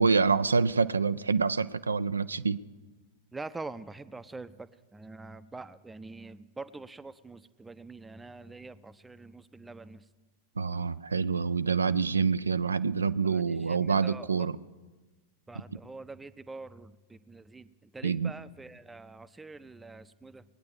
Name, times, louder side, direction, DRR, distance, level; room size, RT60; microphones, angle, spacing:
voice 1, 0.0-2.6 10.6-14.6 18.0-18.3, right 5 dB, 75° right, 14 dB, 0.4 m, -26 dB
voice 2, 3.3-10.0 13.2-14.3 15.5-20.4, right 3 dB, 10° right, 15 dB, 0.6 m, -45 dB
20.5 x 9.5 x 7.3 m, 1.2 s
figure-of-eight pair, 90°, 0 cm